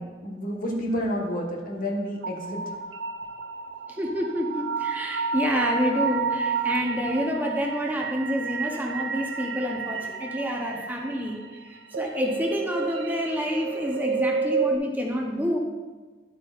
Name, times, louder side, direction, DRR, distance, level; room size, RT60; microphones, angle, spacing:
voice 1, 0.0-2.7, equal, 50° left, -1 dB, 1.3 m, -30 dB
sound 1, 2.2-14.8, right 5 dB, 80° right, 0.5 m, -30 dB
voice 2, 3.9-15.6, equal, 10° right, 0 dB, 0.9 m, -28 dB
11.0 x 8.0 x 2.5 m, 1.3 s
head